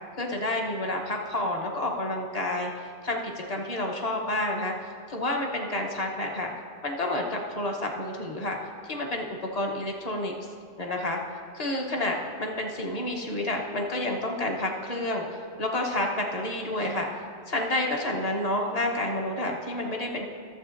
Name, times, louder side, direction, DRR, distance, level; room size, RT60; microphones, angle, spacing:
voice 1, 0.2-4.7 5.1-6.5 6.8-8.6 8.8-9.3 9.5-10.3 10.8-11.2 11.5-17.1 17.5-20.2, left 1 dB, 35° left, 1 dB, 0.9 m, -29 dB
15.5 x 7.2 x 2.5 m, 2.2 s
omnidirectional pair, 1.3 m